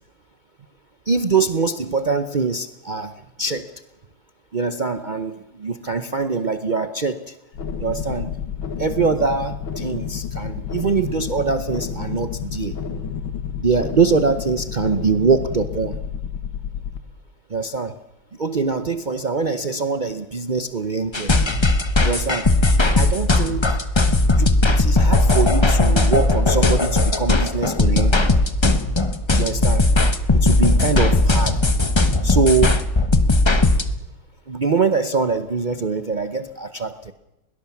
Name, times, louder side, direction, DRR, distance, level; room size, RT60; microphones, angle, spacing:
voice 1, 1.1-3.1 3.4-3.7 4.5-7.2 7.8-8.3 8.8-12.7 13.6-15.9 17.5-17.9 18.4-21.3 22.0-22.5 22.9-23.7 24.3-28.3 29.4-29.8 30.3-31.6 32.2-32.8 33.3-33.4 34.5-37.1, right 4 dB, 80° right, 9 dB, 0.4 m, -23 dB
sound 1, 7.5-17.0, left 7 dB, 90° left, 2.3 m, -30 dB
sound 2, 21.1-33.8, left 2 dB, 20° left, 0.7 m, -17 dB
21.5 x 18.5 x 7.2 m, 0.94 s
omnidirectional pair, 2.2 m